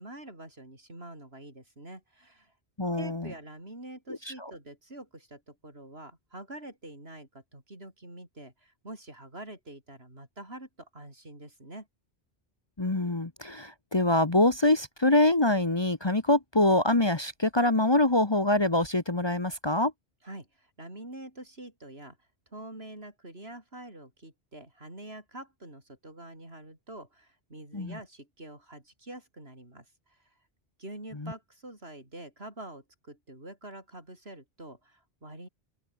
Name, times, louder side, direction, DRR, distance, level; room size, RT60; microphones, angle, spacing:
voice 1, 0.0-2.5 2.9-11.9 20.2-22.2 22.5-30.2 30.8-35.5, right 1 dB, 75° right, 7.1 m, -46 dB
voice 2, 2.8-3.3 4.3-4.5 12.8-19.9 27.7-28.0 31.2-31.3, left 2 dB, 25° left, 1.3 m, -25 dB
open air
omnidirectional pair, 1.0 m